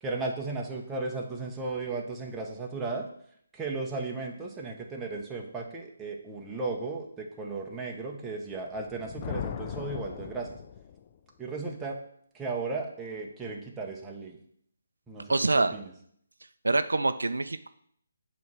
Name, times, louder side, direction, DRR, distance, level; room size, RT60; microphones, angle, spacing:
voice 1, 0.0-3.1 3.5-10.6 11.4-12.0 12.3-14.4 15.1-15.9, right 3 dB, 10° right, -1 dB, 0.9 m, -35 dB
Thunder, 8.7-11.2, left 8 dB, 30° left, 0.3 m, -38 dB
voice 2, 15.3-15.7 16.6-17.7, right 3 dB, 90° right, 11 dB, 0.4 m, -25 dB
6.9 x 3.1 x 5.9 m, 0.66 s
hypercardioid pair, 160°, 0 cm